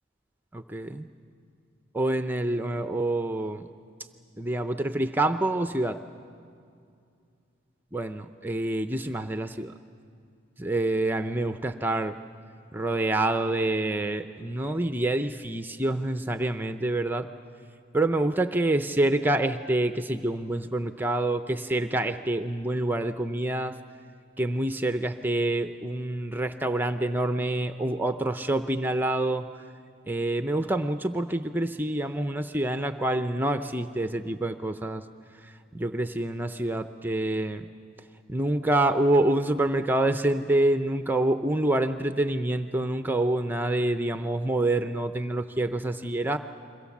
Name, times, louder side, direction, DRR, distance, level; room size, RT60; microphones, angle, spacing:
voice 1, 0.5-1.1 1.9-3.7 4.4-6.0 7.9-9.7 10.6-12.2 12.7-17.3 17.9-23.8 24.4-29.5 30.1-35.0 35.4-37.6 38.3-46.4, right 1 dB, 10° right, 9 dB, 0.5 m, -27 dB
29.5 x 23.0 x 7.2 m, 2.4 s
head